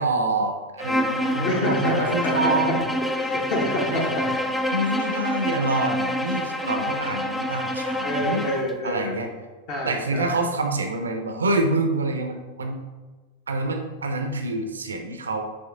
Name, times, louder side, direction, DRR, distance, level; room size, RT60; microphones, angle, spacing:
voice 1, 0.0-2.9 3.9-4.1 4.7-8.4 8.8-9.3 9.9-12.8 13.5-15.4, right 2 dB, 70° right, 5 dB, 0.5 m, -26 dB
Bowed string instrument, 0.8-8.7, left 1 dB, 5° left, 0.3 m, -27 dB
voice 2, 1.3-2.7 3.2-4.3 8.0-9.2 9.7-10.4, left 1 dB, 45° left, 1 dB, 0.9 m, -27 dB
6.8 x 3.0 x 2.5 m, 1.3 s
figure-of-eight pair, 90°, 0 cm